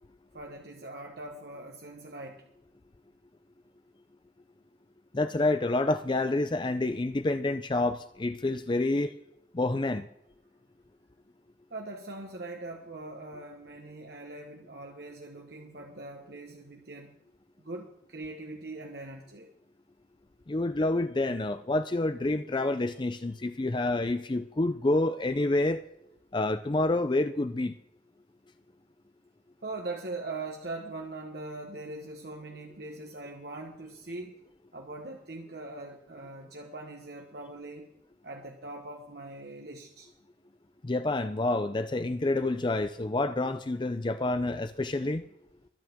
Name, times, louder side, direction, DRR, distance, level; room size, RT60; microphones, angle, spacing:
voice 1, 0.3-2.4 11.7-17.2 17.6-19.5 29.6-34.4 34.7-37.9 38.2-40.1, right 2 dB, 60° right, 1.3 m, -41 dB
voice 2, 5.1-9.1 9.5-10.1 20.5-25.8 26.3-27.7 40.8-45.2, left 2 dB, 25° left, 0.5 m, -28 dB
23.5 x 8.7 x 3.6 m
head